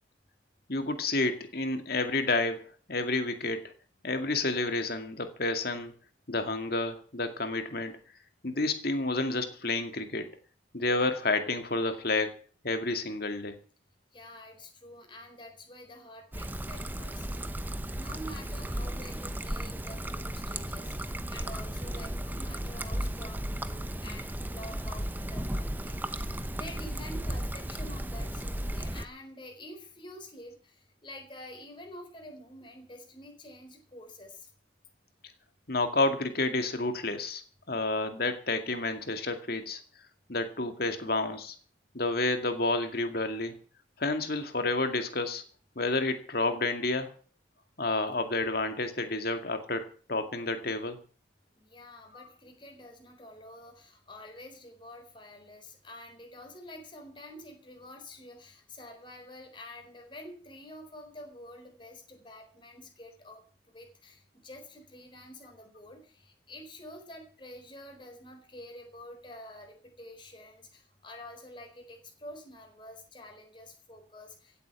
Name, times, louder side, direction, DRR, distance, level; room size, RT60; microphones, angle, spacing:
voice 1, 0.7-2.6 2.9-3.7 4.0-5.9 6.3-7.9 8.4-10.3 10.7-12.3 12.6-13.5 35.7-37.4 37.7-39.8 40.3-41.5 41.9-43.5 44.0-45.4 45.8-47.1 47.8-51.0 52.1-52.3, left 2 dB, 50° left, 7 dB, 2.2 m, -30 dB
voice 2, 14.1-17.5 17.9-34.5 51.6-74.6, left 1 dB, 25° left, 3 dB, 4.2 m, -48 dB
Trickle dribble, 16.3-29.0, right 1 dB, 10° right, 0.8 m, -35 dB
16.0 x 8.5 x 8.3 m, 0.40 s
head